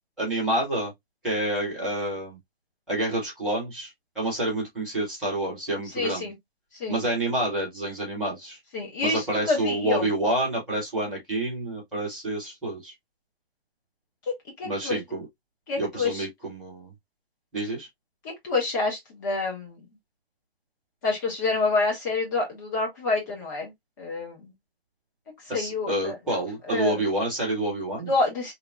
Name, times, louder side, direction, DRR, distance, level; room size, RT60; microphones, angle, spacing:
voice 1, 0.2-0.9 1.2-2.4 2.9-6.3 6.9-8.6 9.0-12.9 14.6-15.3 15.7-16.9 17.5-17.9 25.5-28.1, right 1 dB, ahead, 0.4 m, -28 dB
voice 2, 5.9-6.3 6.8-7.0 8.7-10.1 14.6-15.0 15.7-16.3 18.4-19.9 21.0-23.7 24.0-24.5 25.5-27.0 28.1-28.5, left 3 dB, 20° left, 0.9 m, -27 dB
2.9 x 2.8 x 2.3 m
hypercardioid pair, 160°, 31 cm